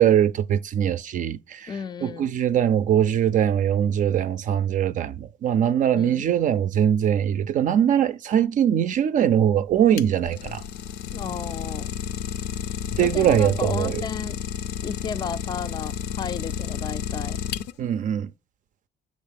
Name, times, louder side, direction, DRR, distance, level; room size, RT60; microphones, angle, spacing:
voice 1, 0.0-1.7 2.0-10.6 13.0-14.0 17.8-18.3, right 9 dB, 50° right, 0.4 m, -21 dB
voice 2, 1.7-2.3 5.9-6.2 11.1-11.9 13.0-14.4 14.8-17.4, left 6 dB, 25° left, 0.3 m, -33 dB
Idling, 9.7-18.0, left 9 dB, 90° left, 0.5 m, -31 dB
7.2 x 6.1 x 3.4 m
cardioid pair, 110°, 17 cm